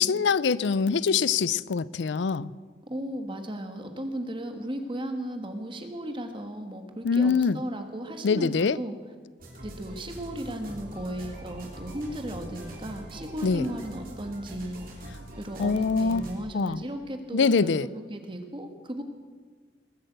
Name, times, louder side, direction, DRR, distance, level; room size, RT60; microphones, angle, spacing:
voice 1, 0.0-2.5 7.0-7.6 8.2-8.8 13.4-13.6 15.6-16.2 16.5-16.8 17.3-17.9, left 5 dB, 75° left, 20 dB, 0.4 m, -24 dB
voice 2, 2.8-9.0 9.6-14.9 15.4-19.0, right 1 dB, 25° right, 6 dB, 1.4 m, -35 dB
sound 1, 9.4-16.4, right 1 dB, 50° right, 3.2 m, -43 dB
20.0 x 8.6 x 7.9 m, 1.5 s
head